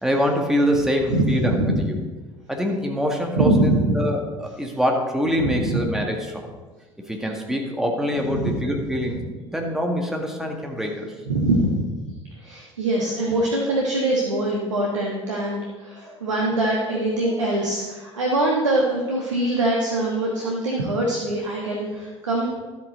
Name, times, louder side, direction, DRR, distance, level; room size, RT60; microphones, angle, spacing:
voice 1, 0.0-2.0 2.5-6.5 7.1-11.1, equal, 5° right, 1 dB, 1.8 m, -25 dB
voice 2, 1.1-1.8 3.3-4.0 5.4-5.8 8.3-8.5 9.0-9.2 11.3-11.9 12.4-22.6, right 1 dB, 75° right, -2 dB, 1.3 m, -23 dB
12.0 x 8.3 x 4.0 m, 1.3 s
figure-of-eight pair, 65°, 16 cm